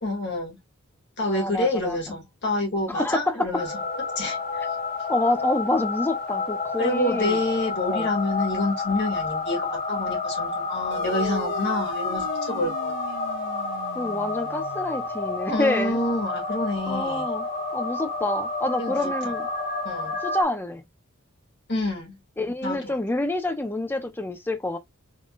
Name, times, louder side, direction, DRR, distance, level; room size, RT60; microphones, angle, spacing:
voice 1, 0.0-0.6 1.2-3.8 4.2-4.7 6.8-12.9 15.5-17.3 18.8-19.3 19.8-20.2 21.7-22.1 22.6-22.9, left 2 dB, 50° left, 2.1 m, -28 dB
voice 2, 1.2-2.0 2.9-3.5 5.1-7.4 7.9-8.1 12.5-12.7 14.0-16.0 16.9-17.5 17.7-19.5 20.2-20.8 22.4-24.8, left 1 dB, 10° left, 0.6 m, -27 dB
sound 1, 3.5-20.4, left 3 dB, 35° left, 2.7 m, -30 dB
sound 2, 10.9-15.8, right 4 dB, 55° right, 0.5 m, -40 dB
3.8 x 3.7 x 2.3 m
head